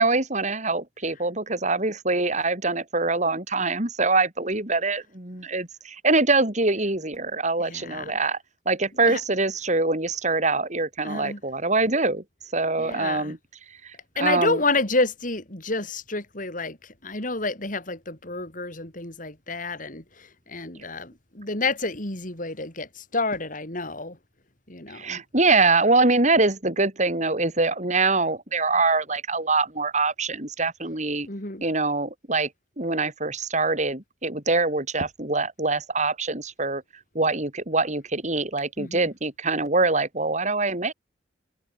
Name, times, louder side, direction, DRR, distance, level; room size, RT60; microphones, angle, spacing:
voice 1, 0.0-8.4 8.7-12.2 12.5-13.4 13.8-14.6 24.9-31.3 31.6-32.5 32.8-36.8 37.1-40.9, right 3 dB, 40° right, 4.5 m, -24 dB
voice 2, 7.6-8.1 9.0-9.2 11.0-11.4 12.8-13.4 14.2-24.2 24.7-25.2 31.3-31.6 38.8-39.1, left 3 dB, 45° left, 5.8 m, -29 dB
head